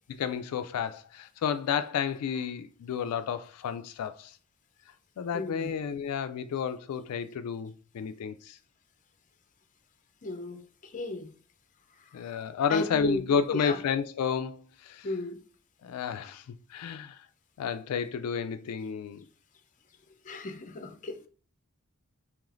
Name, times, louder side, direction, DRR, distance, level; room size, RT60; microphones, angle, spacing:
voice 1, 0.1-4.3 5.2-8.6 12.1-15.1 15.8-16.4 16.7-17.2 17.6-19.2, left 7 dB, 90° left, 0.3 m, -31 dB
voice 2, 5.3-5.7 10.2-11.3 12.0-12.2 12.7-13.2 13.5-13.8 15.0-15.4 20.2-21.3, left 2 dB, 35° left, 0.5 m, -35 dB
4.9 x 3.1 x 2.5 m
head